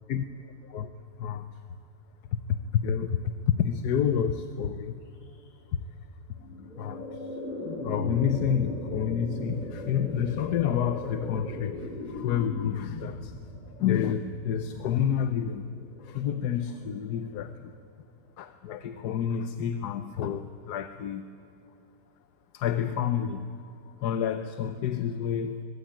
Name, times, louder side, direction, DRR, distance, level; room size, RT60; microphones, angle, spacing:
voice 1, 1.2-1.6 2.3-5.8 6.8-7.4 7.8-13.4 13.8-15.6 16.0-17.7 18.4-21.3 22.5-23.5 23.8-25.6, left 8 dB, 80° left, 10 dB, 1.4 m, -29 dB
sound 1, 6.3-17.5, left 2 dB, 25° left, 8.3 m, -38 dB
22.5 x 22.0 x 8.9 m, 2.7 s
omnidirectional pair, 1.7 m